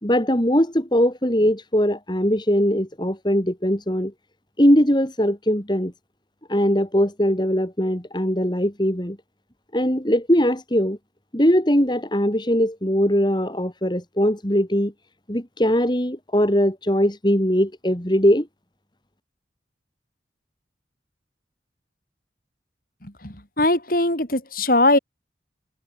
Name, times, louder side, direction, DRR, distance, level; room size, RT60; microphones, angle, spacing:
voice 1, 0.0-4.1 4.6-5.9 6.5-9.2 9.7-11.0 11.3-14.9 15.3-18.5, equal, 25° left, 4.1 m, -20 dB
voice 2, 23.0-25.0, left 2 dB, 50° left, 7.5 m, -21 dB
head